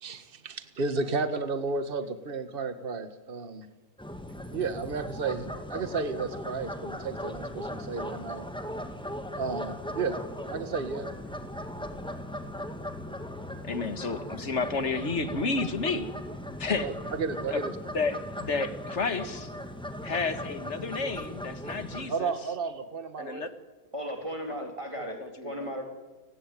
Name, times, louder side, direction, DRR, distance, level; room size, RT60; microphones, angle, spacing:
voice 1, 0.0-3.7 4.5-8.5 9.4-10.2 10.5-11.1 16.8-17.7 22.1-23.4, right 4 dB, 35° right, 10 dB, 1.7 m, -32 dB
sound 1, 4.0-22.1, equal, 5° left, 2.0 m, -38 dB
voice 2, 13.6-16.1 16.6-16.9 17.5-17.6 17.9-19.5 20.0-22.3 23.2-23.5 24.6-24.7 25.1-25.7, left 4 dB, 45° left, 10 dB, 2.0 m, -31 dB
voice 3, 23.9-25.8, equal, 20° right, 3 dB, 3.5 m, -36 dB
30.0 x 19.0 x 9.2 m, 1.2 s
omnidirectional pair, 1.8 m